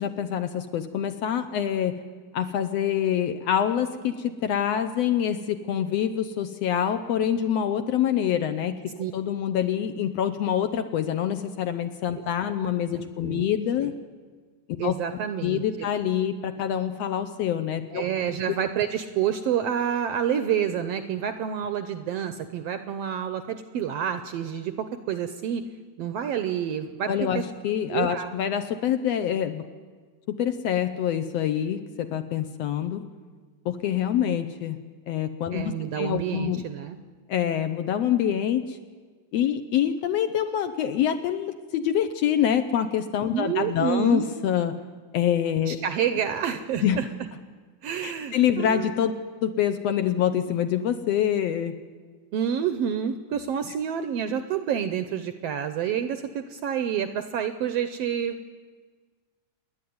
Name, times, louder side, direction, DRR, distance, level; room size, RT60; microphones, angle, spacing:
voice 1, 0.0-2.0 2.3-13.9 14.7-15.0 15.4-18.0 27.1-29.6 30.3-33.1 33.6-34.8 35.1-36.6 37.3-38.8 39.3-44.8 45.1-45.8 46.8-47.0 48.0-49.1 49.4-51.7, left 9 dB, 70° left, 9 dB, 1.7 m, -26 dB
voice 2, 12.9-13.5 14.8-15.6 17.9-25.6 26.0-27.4 27.9-28.3 35.5-37.0 43.3-44.3 45.6-47.1 47.8-48.9 52.3-58.5, right 8 dB, 75° right, 10 dB, 1.5 m, -28 dB
27.5 x 10.5 x 9.4 m, 1.5 s
omnidirectional pair, 3.5 m